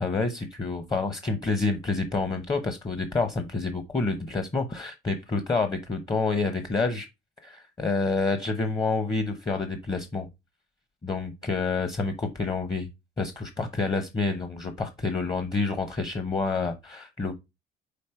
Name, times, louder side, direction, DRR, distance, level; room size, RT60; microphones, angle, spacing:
voice 1, 0.0-7.1 7.4-10.3 11.0-12.9 13.2-17.3, left 3 dB, 25° left, 0.9 m, -28 dB
5.2 x 4.4 x 4.4 m
cardioid pair, 110°, 17 cm